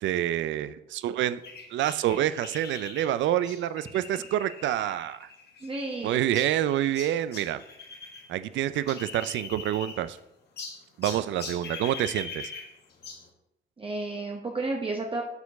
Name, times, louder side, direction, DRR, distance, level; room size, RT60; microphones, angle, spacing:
voice 1, 0.0-1.4 1.7-5.3 6.0-7.6 8.3-10.2 11.0-12.5, right 12 dB, 70° right, 14 dB, 0.4 m, -27 dB
sound 1, 1.4-8.3 8.5-10.2 10.6-13.3, left 4 dB, 55° left, 1.4 m, -42 dB
voice 2, 5.6-6.2 13.8-15.2, right 2 dB, 25° right, 0 dB, 0.8 m, -32 dB
6.9 x 4.4 x 4.1 m, 0.84 s
cardioid pair, 90°, 20 cm